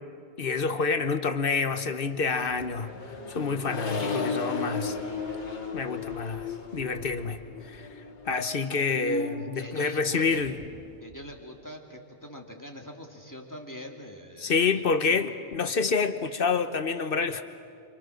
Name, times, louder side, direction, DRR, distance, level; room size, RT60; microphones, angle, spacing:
voice 1, 0.4-2.9 3.3-5.0 5.7-6.5 6.7-7.4 7.7-7.9 8.3-10.5 14.4-17.4, left 4 dB, 55° left, 9 dB, 1.3 m, -27 dB
Accelerating revving vroom, 2.3-8.9, left 4 dB, 85° left, 2.3 m, -35 dB
sound 1, 2.5-3.4 3.6-3.8 4.1-4.3 4.6-4.7 4.9-5.1 5.7-6.8 7.5-7.6 7.9-8.0 8.2-9.4 10.2-11.3, equal, 60° right, 5.1 m, -42 dB
voice 2, 9.5-10.4 11.0-15.2, equal, 15° left, 1 dB, 2.3 m, -43 dB
29.0 x 25.0 x 6.6 m, 2.3 s
omnidirectional pair, 1.1 m